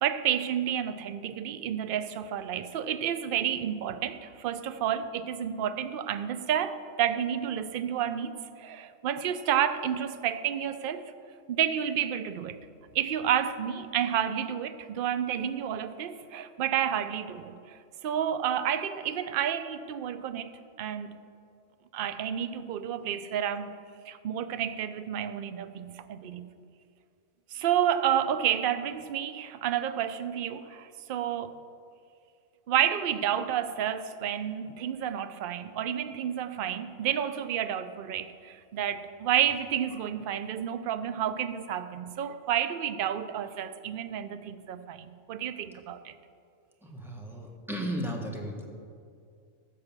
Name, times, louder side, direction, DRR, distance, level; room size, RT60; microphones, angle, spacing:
voice 1, 0.0-11.1 11.5-12.6 12.9-20.5 20.8-21.2 21.9-23.7 24.1-26.5 27.5-31.6 32.7-46.1, right 9 dB, 60° right, 12 dB, 0.6 m, -30 dB
voice 2, 46.8-48.7, equal, ahead, 0 dB, 1.3 m, -35 dB
14.0 x 5.1 x 7.3 m, 2.3 s
omnidirectional pair, 1.4 m